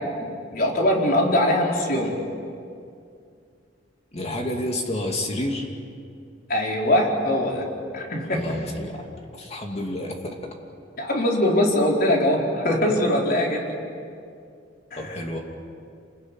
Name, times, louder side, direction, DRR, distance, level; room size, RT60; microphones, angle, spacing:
voice 1, 0.0-2.1 6.5-7.7 7.9-8.4 11.0-13.6 14.9-15.0, left 1 dB, 50° left, 0 dB, 4.5 m, -22 dB
voice 2, 4.1-5.7 8.3-10.5 15.0-15.4, left 1 dB, 35° left, 2 dB, 2.5 m, -30 dB
29.0 x 20.0 x 9.1 m, 2.4 s
head